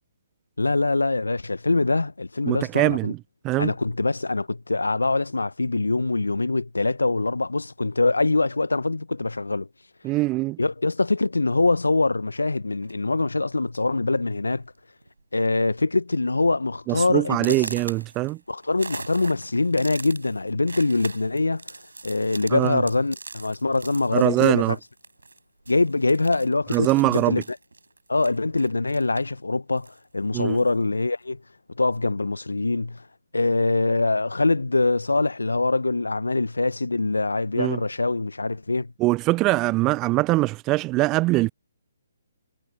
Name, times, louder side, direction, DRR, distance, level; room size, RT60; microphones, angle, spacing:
voice 1, 0.6-3.1 3.6-9.7 10.6-14.6 15.3-17.7 18.5-21.6 22.0-24.8 25.7-27.4 28.1-31.4 31.8-33.0 33.3-38.9, left 3 dB, 80° left, 1.2 m, -23 dB
voice 2, 2.5-3.2 3.4-3.7 10.0-10.6 16.9-18.4 22.5-22.8 24.1-24.8 26.7-27.4 30.3-30.6 37.6-37.8 39.0-41.5, right 20 dB, 20° right, 0.3 m, -22 dB
sound 1, 12.8-13.1 14.0-14.1 14.4-14.7 15.0-15.5 15.9-16.0 16.5-16.6 17.3-25.4 25.7-29.4 29.8-30.8, right 3 dB, 75° right, 5.7 m, -41 dB
figure-of-eight pair, 135°, 0 cm